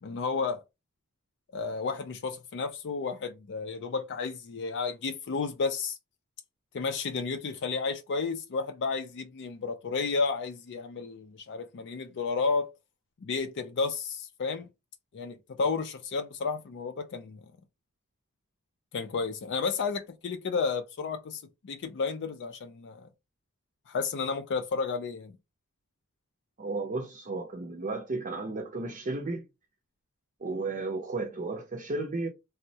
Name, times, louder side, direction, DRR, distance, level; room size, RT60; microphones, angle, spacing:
voice 1, 0.0-0.6 1.5-6.0 6.7-12.7 13.2-14.7 15.1-17.4 18.9-23.1 23.9-25.3, left 4 dB, 55° left, 0.4 m, -32 dB
voice 2, 26.6-29.5 30.4-32.3, right 3 dB, 40° right, 0.5 m, -33 dB
3.4 x 2.1 x 2.7 m
head